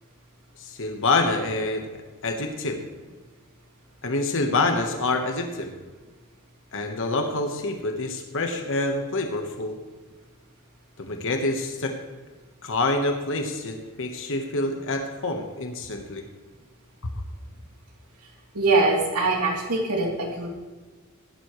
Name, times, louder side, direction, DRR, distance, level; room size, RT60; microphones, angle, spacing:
voice 1, 0.6-2.8 4.0-5.7 6.7-9.7 11.0-11.9 12.6-16.2 17.0-17.1, left 2 dB, 60° left, 4 dB, 1.3 m, -27 dB
voice 2, 18.5-20.5, right 3 dB, 85° right, -1 dB, 3.2 m, -23 dB
16.5 x 12.0 x 3.2 m, 1.3 s
head